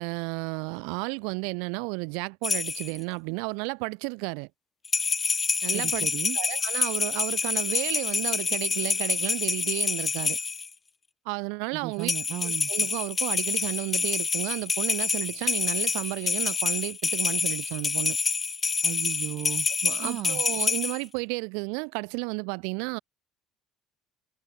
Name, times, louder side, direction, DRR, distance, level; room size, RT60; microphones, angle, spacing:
voice 1, 0.0-4.5 5.6-6.1 6.3-10.4 11.2-12.1 12.4-18.2 19.8-23.0, right 39 dB, 90° right, 4.3 m, -32 dB
sound 1, 2.4-3.0 4.8-10.7 12.0-21.0, left 5 dB, 20° left, 2.7 m, -27 dB
voice 2, 5.7-6.4 11.7-12.7 18.8-19.7 20.0-20.4, right 15 dB, 55° right, 4.8 m, -35 dB
cardioid pair, 150°, 0 cm